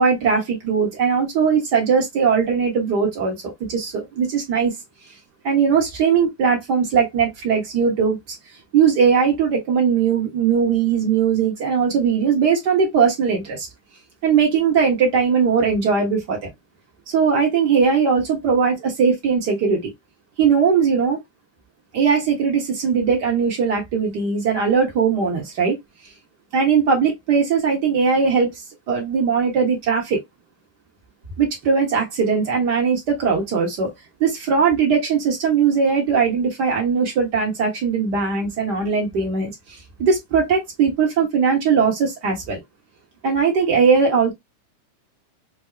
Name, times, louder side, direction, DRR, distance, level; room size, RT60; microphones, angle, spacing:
voice 1, 0.0-4.7 5.4-8.2 8.7-13.7 14.2-16.5 17.1-19.9 20.4-21.2 21.9-25.8 26.5-28.5 28.9-30.2 31.4-33.9 34.2-39.5 40.0-42.6 43.2-44.3, right 6 dB, 55° right, 1.2 m, -19 dB
6.1 x 2.1 x 2.3 m
omnidirectional pair, 3.6 m